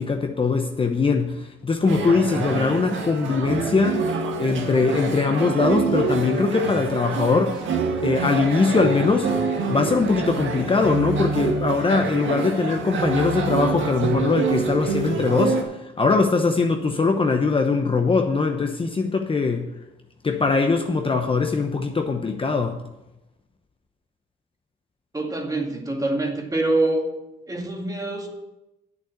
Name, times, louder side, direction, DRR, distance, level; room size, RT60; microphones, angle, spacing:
voice 1, 0.0-4.0 4.4-7.6 8.0-9.3 9.7-19.7 20.2-22.8, left 4 dB, 25° left, 4 dB, 0.9 m, -21 dB
sound 1, 1.9-15.6, right 4 dB, 75° right, 1.8 m, -26 dB
voice 2, 25.1-27.1 27.5-28.3, right 2 dB, 20° right, 2 dB, 2.1 m, -25 dB
8.4 x 6.7 x 8.3 m, 0.96 s
cardioid pair, 90°, 20 cm